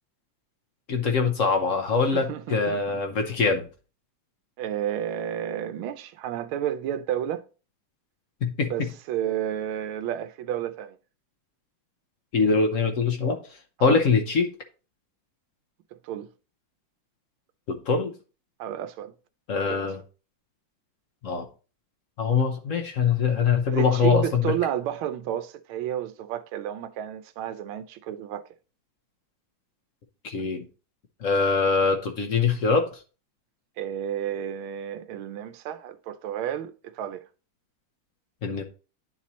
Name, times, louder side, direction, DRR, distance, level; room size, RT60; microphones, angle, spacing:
voice 1, 0.9-3.7 8.4-8.7 12.3-13.4 13.8-14.5 17.7-18.1 19.5-20.0 21.2-21.5 22.2-24.5 30.2-30.6 31.2-33.0 38.4-38.6, left 5 dB, 55° left, 0.9 m, -23 dB
voice 2, 2.1-3.0 4.6-7.4 8.7-11.0 13.8-14.0 16.0-16.3 18.6-19.1 19.6-19.9 23.7-28.4 33.8-37.2, right 10 dB, 85° right, 1.5 m, -31 dB
10.0 x 4.2 x 3.0 m
omnidirectional pair, 2.2 m